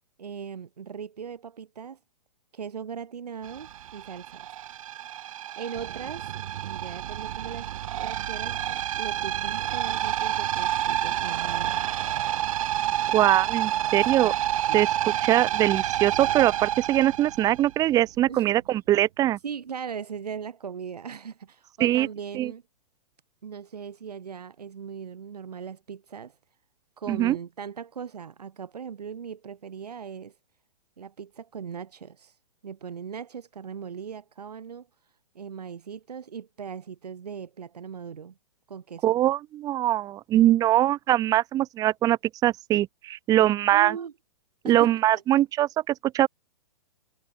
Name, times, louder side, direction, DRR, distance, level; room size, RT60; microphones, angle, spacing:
voice 1, 0.2-2.0 2.5-4.5 5.6-6.3 6.6-8.6 9.0-11.8 13.8-13.9 14.2-14.4 14.7-14.9 18.3-18.4 19.4-22.6 23.4-26.4 27.0-30.3 31.0-32.3 32.6-34.9 35.4-38.3 38.7-39.2 43.4-44.1 44.6-45.2, right 7 dB, 70° right, 3.8 m, -39 dB
sound 1, 3.4-18.0, right 12 dB, 55° right, 2.3 m, -29 dB
voice 2, 13.1-14.3 14.7-19.4 21.8-22.1 22.3-22.5 27.1-27.4 39.0-44.0 44.6-46.3, right 13 dB, 15° right, 0.6 m, -22 dB
figure-of-eight pair, 120°, 21 cm